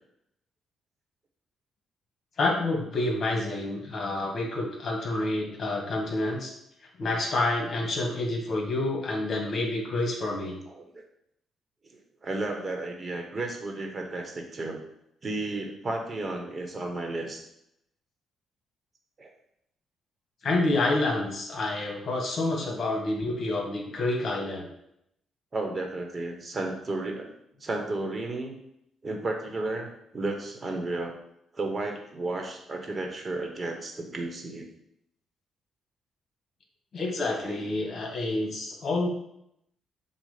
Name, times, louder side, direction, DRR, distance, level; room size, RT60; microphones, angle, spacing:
voice 1, 2.4-6.5 7.0-10.6 20.4-24.7 36.9-39.1, left 2 dB, 50° left, 0 dB, 1.7 m, -28 dB
voice 2, 11.9-14.8 15.2-17.4 19.2-19.3 22.5-22.8 25.5-27.3 27.6-28.5 29.0-31.2 31.5-34.7 37.4-37.7, right 2 dB, 30° right, 2 dB, 1.3 m, -33 dB
7.4 x 2.5 x 5.1 m, 0.77 s
cardioid pair, 90°, 0 cm